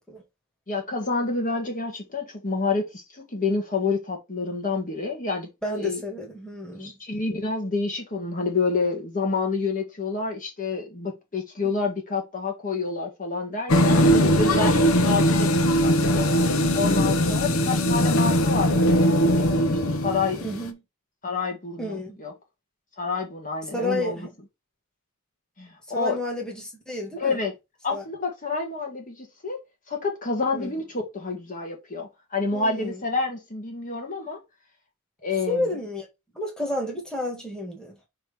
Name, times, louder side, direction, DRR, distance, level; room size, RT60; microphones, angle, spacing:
voice 1, 0.7-6.0 6.8-14.0 14.4-14.7 15.0-16.2 16.7-20.4 21.2-22.3 23.0-24.3 25.6-26.2 27.2-27.5 27.8-29.6 29.9-34.4 35.2-35.7, left 4 dB, 40° left, 1.7 m, -28 dB
voice 2, 5.6-7.0 13.9-14.7 20.4-20.8 21.8-22.2 23.7-24.3 25.9-27.4 27.9-28.0 30.5-30.7 32.5-33.0 35.5-36.1 36.3-38.0, left 1 dB, 5° left, 1.8 m, -31 dB
sound 1, 13.7-20.7, equal, 75° left, 0.9 m, -20 dB
5.8 x 3.0 x 5.4 m
head